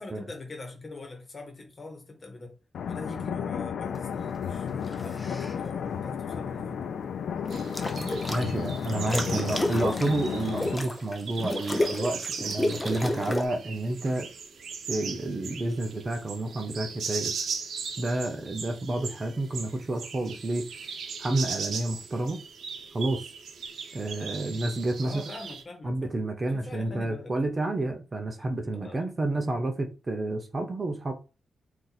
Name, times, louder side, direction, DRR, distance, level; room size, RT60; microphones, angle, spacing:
voice 1, 0.0-2.6 2.8-7.0 8.3-8.6 9.2-9.9 25.0-27.4 28.7-29.1, left 2 dB, 35° left, 1.2 m, -43 dB
sound 1, 2.7-10.7, left 7 dB, 80° left, 0.3 m, -33 dB
sound 2, 4.9-5.6 7.5-8.5 8.8-13.5, left 1 dB, 10° left, 0.6 m, -31 dB
sound 3, 7.5-25.6, right 5 dB, 75° right, 0.7 m, -39 dB
voice 2, 8.3-14.3 14.9-17.3 18.0-20.6 21.2-22.4 22.9-23.3 23.9-25.1 25.8-31.1, right 2 dB, 30° right, 0.6 m, -30 dB
4.4 x 2.6 x 4.0 m
wide cardioid pair, 135°, 0 cm